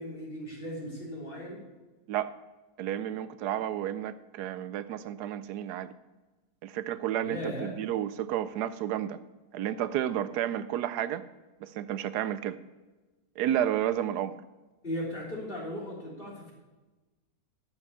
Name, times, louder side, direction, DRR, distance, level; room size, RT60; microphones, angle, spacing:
voice 1, 0.0-1.6 7.2-7.7 14.8-16.5, equal, 35° left, -4 dB, 3.6 m, -37 dB
voice 2, 2.8-5.9 6.6-9.2 9.5-11.2 11.6-12.6 13.4-14.4, right 11 dB, 80° right, 15 dB, 1.1 m, -31 dB
11.5 x 6.2 x 6.8 m, 1.2 s
omnidirectional pair, 1.7 m